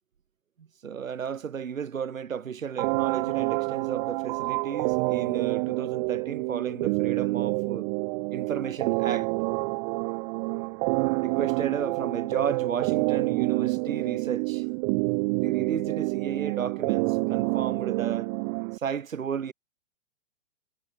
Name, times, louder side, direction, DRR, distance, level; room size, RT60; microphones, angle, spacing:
voice 1, 0.8-7.9 8.3-9.3 11.2-14.6 15.3-18.3 18.7-19.5, right 7 dB, 85° right, 3.3 m, -33 dB
sound 1, 2.8-18.8, right 34 dB, 35° right, 1.2 m, -28 dB
hypercardioid pair, 130°, 39 cm